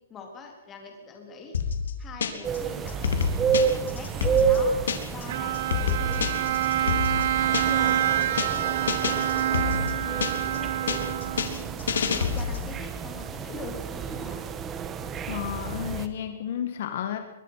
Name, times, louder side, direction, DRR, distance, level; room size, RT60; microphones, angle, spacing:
voice 1, 0.1-1.6 2.0-4.7 5.1-6.4 6.8-11.2 11.5-14.5, left 4 dB, 15° left, 2 dB, 3.8 m, -42 dB
sound 1, 1.5-2.6 2.9-5.2 5.5-7.9 8.2-8.6 8.9-10.6 10.9-12.7, left 6 dB, 85° left, 3.5 m, -28 dB
sound 2, 2.4-16.1, right 7 dB, 15° right, 1.2 m, -30 dB
Bowed string instrument, 5.3-11.7, right 12 dB, 45° right, 0.9 m, -27 dB
voice 2, 15.3-17.2, left 10 dB, 50° left, 6 dB, 1.7 m, -32 dB
23.5 x 22.0 x 5.8 m, 0.96 s
hypercardioid pair, 170°, 0 cm